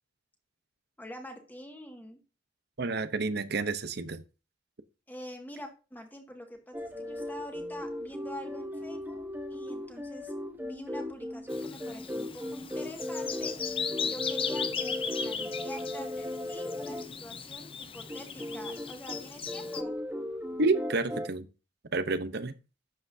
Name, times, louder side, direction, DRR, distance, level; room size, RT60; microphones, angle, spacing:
voice 1, 1.0-2.2 5.1-9.2 9.5-10.3 10.6-20.0, equal, 10° left, 2.0 m, -46 dB
voice 2, 2.8-4.2 20.6-21.5 21.9-22.5, right 3 dB, 60° right, 0.9 m, -29 dB
sound 1, 6.7-17.1 18.1-21.3, left 1 dB, 10° right, 1.0 m, -37 dB
Bird vocalization bird call bird song, 11.5-19.8, left 6 dB, 30° left, 0.6 m, -37 dB
11.5 x 7.8 x 2.8 m
head